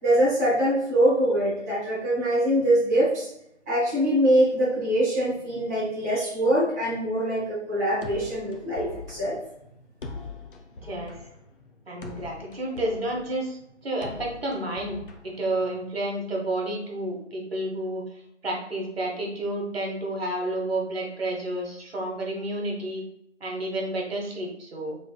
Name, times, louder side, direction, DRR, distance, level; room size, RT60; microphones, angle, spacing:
voice 1, 0.0-3.3 3.7-9.4, right 1 dB, 15° right, -10 dB, 0.8 m, -23 dB
sound 1, 8.0-15.9, left 3 dB, 50° left, 0.6 m, -43 dB
voice 2, 10.8-11.2 11.9-13.6 13.8-18.0 18.4-23.0 23.4-25.0, right 1 dB, 55° right, 0 dB, 1.2 m, -30 dB
6.1 x 3.4 x 2.3 m, 0.77 s
figure-of-eight pair, 150°, 35 cm